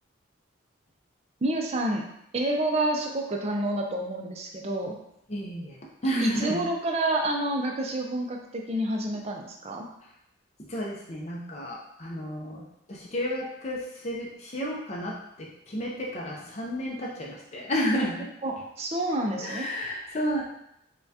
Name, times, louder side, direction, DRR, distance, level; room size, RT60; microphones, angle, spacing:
voice 1, 1.4-2.1 2.3-5.0 6.2-9.9 18.4-19.7, right 1 dB, 30° right, 1 dB, 0.4 m, -28 dB
voice 2, 5.3-5.8 6.0-6.6 10.6-18.3 19.4-20.4, equal, 30° left, -3 dB, 0.5 m, -31 dB
5.5 x 2.2 x 2.7 m, 0.79 s
head